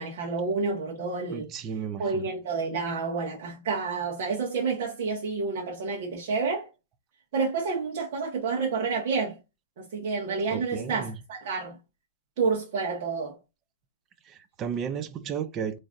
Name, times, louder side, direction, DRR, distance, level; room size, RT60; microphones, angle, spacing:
voice 1, 0.0-1.5 2.0-6.7 7.3-9.4 9.8-11.7 12.4-13.4, right 4 dB, 60° right, 1.4 m, -29 dB
voice 2, 1.3-2.3 10.5-11.2 14.3-15.8, right 7 dB, 25° right, 0.5 m, -34 dB
3.7 x 3.2 x 2.5 m
supercardioid pair, 150°, 0 cm